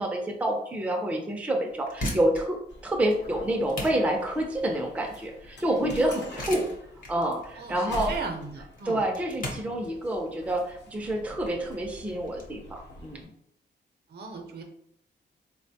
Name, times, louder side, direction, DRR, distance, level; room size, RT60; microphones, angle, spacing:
voice 1, 0.0-2.6 2.8-6.7 7.1-8.1 8.9-13.3, right 1 dB, 10° right, 1 dB, 0.3 m, -28 dB
sound 1, 1.8-12.5, left 1 dB, 50° left, 0.8 m, -40 dB
sound 2, 2.7-13.3, left 1 dB, 80° left, 0.8 m, -45 dB
voice 2, 6.0-6.7 7.5-9.0 14.1-14.6, right 4 dB, 65° right, 3 dB, 0.6 m, -38 dB
3.8 x 2.1 x 2.7 m, 0.73 s
wide cardioid pair, 165°, 18 cm